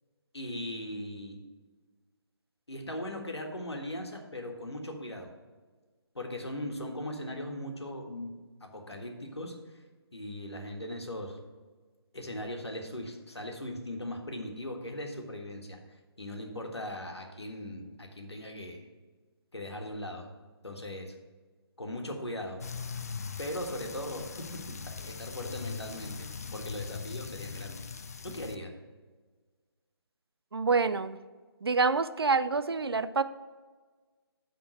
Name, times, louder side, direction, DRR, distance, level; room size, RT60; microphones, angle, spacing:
voice 1, 0.3-1.4 2.7-5.3 6.1-9.5 10.1-11.4 12.1-15.8 16.2-18.9 19.5-20.3 20.6-21.1 21.8-22.6 23.4-24.3 24.7-27.8 28.2-28.7, left 1 dB, 80° left, 2 dB, 1.6 m, -39 dB
sound 1, 22.6-28.6, left 5 dB, 35° left, 0.3 m, -40 dB
voice 2, 30.5-31.2 31.6-33.2, right 4 dB, 70° right, 12 dB, 0.5 m, -27 dB
9.5 x 3.8 x 6.3 m, 1.4 s
figure-of-eight pair, 150°, 14 cm